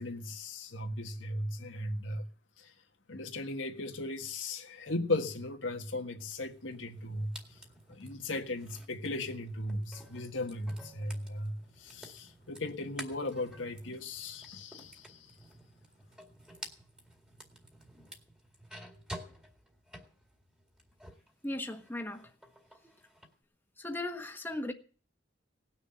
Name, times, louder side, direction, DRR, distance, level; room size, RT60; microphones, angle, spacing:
voice 1, 0.0-2.2 2.6-2.7 3.1-7.3 7.9-15.2, left 2 dB, 90° left, 1.7 m, -37 dB
sound 1, 6.2-21.3 21.7-23.3, equal, 5° right, 2.1 m, -51 dB
voice 2, 21.4-22.3 23.8-24.7, left 1 dB, 10° left, 1.3 m, -37 dB
18.5 x 6.6 x 7.8 m
head